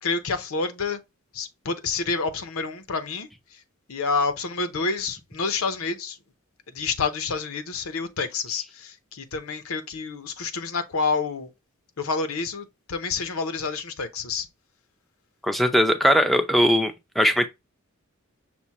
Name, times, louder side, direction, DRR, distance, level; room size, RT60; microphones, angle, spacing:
voice 1, 0.0-1.0 1.3-3.6 3.9-6.2 6.7-11.5 12.0-14.5, left 4 dB, 75° left, 0.7 m, -28 dB
voice 2, 15.4-17.5, equal, ahead, 0.4 m, -20 dB
6.0 x 2.1 x 4.1 m
head